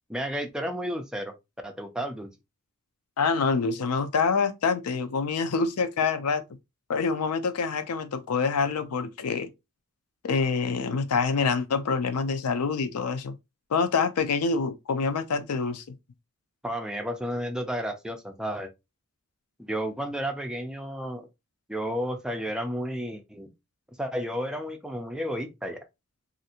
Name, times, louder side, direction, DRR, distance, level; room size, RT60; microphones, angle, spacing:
voice 1, 0.1-1.3 1.6-2.3 16.6-18.7 19.7-21.3 21.7-23.5 24.0-25.8, equal, 5° right, 0.4 m, -32 dB
voice 2, 3.2-6.4 6.9-9.5 10.2-13.3 13.7-15.8, left 5 dB, 85° left, 0.5 m, -26 dB
3.2 x 2.5 x 2.7 m
head